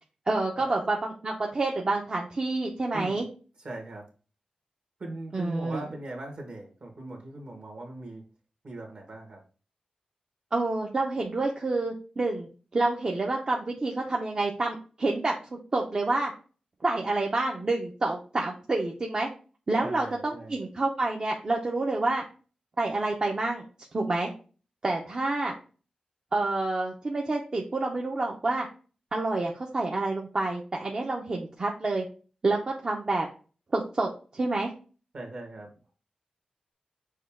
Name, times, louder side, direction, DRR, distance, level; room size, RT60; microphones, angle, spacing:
voice 1, 0.3-3.3 5.3-5.8 10.5-16.3 16.8-19.3 19.7-22.2 22.8-23.7 23.9-24.3 24.8-25.5 26.3-28.7 29.1-32.0 32.4-33.3 33.7-34.7, right 2 dB, 35° right, 0 dB, 0.7 m, -28 dB
voice 2, 2.9-3.2 3.6-4.0 5.0-8.2 8.6-9.4 19.8-20.5 35.1-35.7, right 2 dB, 55° right, 1 dB, 1.5 m, -40 dB
6.4 x 2.3 x 3.5 m, 0.37 s
wide cardioid pair, 135°, 2 cm